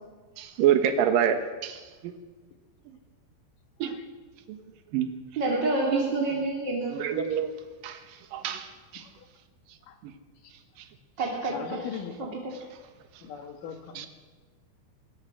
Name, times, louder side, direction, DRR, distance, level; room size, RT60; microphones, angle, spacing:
voice 1, 0.4-2.1 3.8-4.0 4.5-4.6 4.9-5.1 5.9-6.3 6.9-7.5 7.8-8.0 8.3-8.7 8.9-9.0 14.0-14.1, right 9 dB, 65° right, 7 dB, 2.4 m, -26 dB
voice 2, 5.4-7.0 11.2-11.8 12.2-12.3, right 2 dB, 30° right, -2 dB, 2.3 m, -28 dB
voice 3, 8.9-9.3 9.9-10.0 10.4-10.5 11.5-12.3 13.2-14.1, left 7 dB, 60° left, 5 dB, 2.3 m, -40 dB
21.5 x 21.5 x 6.4 m, 1.3 s
omnidirectional pair, 5.8 m